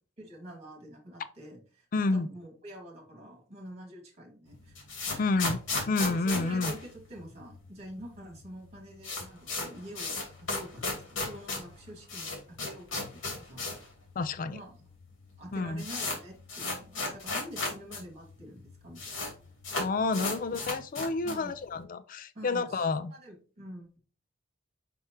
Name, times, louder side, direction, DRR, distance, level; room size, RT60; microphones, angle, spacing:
voice 1, 0.2-4.8 5.1-5.3 6.0-13.9 14.5-14.9 15.4-19.3 20.1-20.4 21.2-21.6 22.3-24.0, right 1 dB, 35° right, 0 dB, 2.9 m, -47 dB
voice 2, 1.9-2.3 5.2-5.6 5.9-6.7 14.2-14.6 15.5-15.8 19.8-23.1, left 3 dB, 45° left, 13 dB, 0.4 m, -29 dB
sound 1, 4.5-7.7 8.0-8.1 8.3-8.4 8.7-13.9 14.2-14.3 15.0-15.1 15.3-18.0 18.3-18.4 18.6-19.3 19.6-21.5, left 3 dB, 80° left, 2.7 m, -35 dB
5.9 x 5.5 x 3.3 m, 0.39 s
head